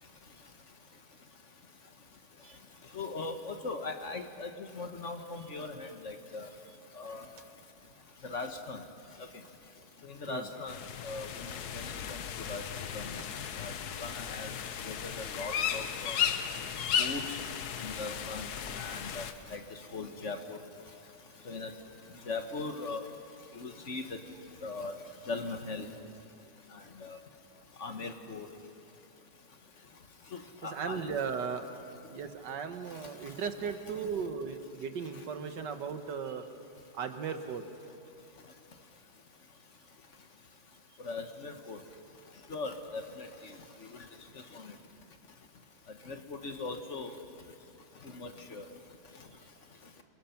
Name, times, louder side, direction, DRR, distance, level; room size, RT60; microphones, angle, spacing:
voice 1, 2.9-4.5 4.8-6.5 7.0-7.2 8.3-8.8 10.2-10.8 11.0-11.5 11.7-12.2 12.5-12.6 12.9-13.1 13.6-13.7 14.0-14.5 14.8-16.1 17.0-17.2 17.8-18.5 18.8-19.6 19.9-20.6 21.5-21.7 22.3-23.0 23.6-24.0 24.6-24.9 25.3-25.9 27.0-27.2 27.8-28.5 30.6-31.1 41.0-41.8 42.5-43.3 44.5-44.6 46.1-46.2 46.4-47.1 48.0-48.6, left 3 dB, 45° left, 6 dB, 1.5 m, -39 dB
sound 1, 10.7-19.3, left 8 dB, 70° left, 1.4 m, -35 dB
voice 2, 30.6-31.6 32.1-36.5 36.9-37.6, right 6 dB, 85° right, 8 dB, 1.8 m, -36 dB
28.0 x 22.0 x 5.9 m, 2.6 s
omnidirectional pair, 1.8 m